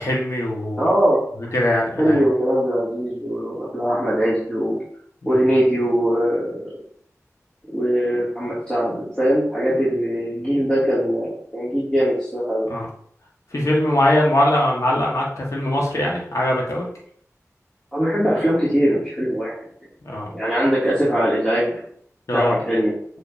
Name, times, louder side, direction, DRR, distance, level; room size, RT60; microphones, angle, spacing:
voice 1, 0.0-0.9 1.5-2.2 5.2-5.4 12.7-12.9 13.5-16.9 20.0-20.3 22.3-22.5, left 1 dB, 65° left, -3 dB, 1.6 m, -21 dB
voice 2, 0.8-1.5 2.0-4.8 5.3-6.7 7.7-12.7 17.9-19.5 20.3-21.8 22.3-22.9, equal, 15° left, -10 dB, 2.7 m, -21 dB
6.3 x 5.3 x 2.8 m, 0.64 s
wide cardioid pair, 45°, 6 cm